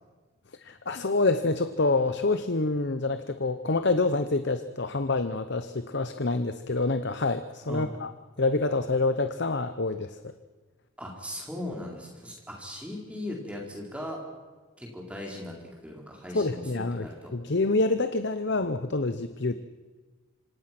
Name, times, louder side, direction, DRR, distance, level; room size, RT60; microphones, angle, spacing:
voice 1, 0.6-8.1 8.4-10.2 16.3-19.6, left 3 dB, 55° left, 10 dB, 0.9 m, -27 dB
voice 2, 11.0-14.2 14.8-15.6 15.8-17.3, left 1 dB, 5° right, -1 dB, 4.4 m, -38 dB
26.5 x 25.5 x 6.1 m, 1.3 s
head